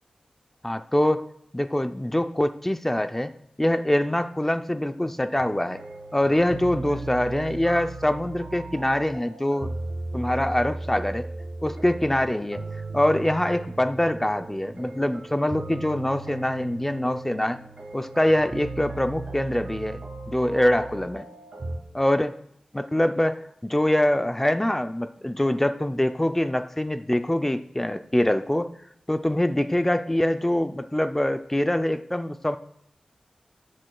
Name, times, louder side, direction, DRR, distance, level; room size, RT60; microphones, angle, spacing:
voice 1, 0.6-1.3 1.5-3.3 3.6-5.8 6.1-9.7 10.1-11.3 11.6-12.6 12.9-17.6 17.9-21.3 21.9-22.3 22.7-28.7 29.1-32.6, left 1 dB, 15° left, 10 dB, 0.5 m, -24 dB
sound 1, 5.4-21.8, right 2 dB, 60° right, 1.6 m, -37 dB
19.0 x 7.6 x 2.3 m, 0.73 s
wide cardioid pair, 65°, 2 cm